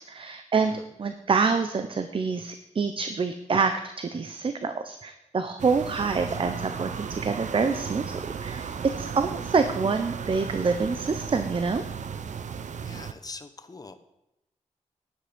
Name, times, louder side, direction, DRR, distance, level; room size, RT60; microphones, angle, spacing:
voice 1, 0.1-8.7 9.0-11.8, right 4 dB, 45° right, 8 dB, 0.8 m, -27 dB
sound 1, 5.6-13.1, right 6 dB, 80° right, 0.9 m, -35 dB
voice 2, 12.8-13.9, left 3 dB, 30° left, 8 dB, 1.2 m, -42 dB
11.0 x 10.5 x 5.3 m, 0.87 s
wide cardioid pair, 115°, 12 cm